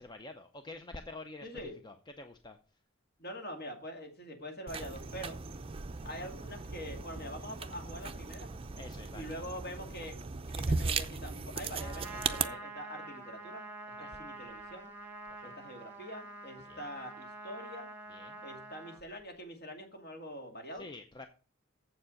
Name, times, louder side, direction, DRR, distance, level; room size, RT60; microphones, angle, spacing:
voice 1, 0.0-1.5 1.8-2.6 8.8-9.2 14.0-14.2 15.4-15.5 16.7-16.8 18.1-18.4 20.8-21.3, left 2 dB, 20° left, 7 dB, 0.5 m, -47 dB
voice 2, 1.4-1.8 3.2-5.4 6.0-8.5 9.1-10.2 10.5-14.9 15.4-17.9 18.4-20.9, equal, 45° left, 3 dB, 2.3 m, -44 dB
sound 1, 4.7-12.4, right 4 dB, 25° right, 0.5 m, -37 dB
Trumpet, 11.8-19.0, right 2 dB, 10° right, 1.5 m, -46 dB
7.5 x 7.3 x 6.3 m, 0.37 s
head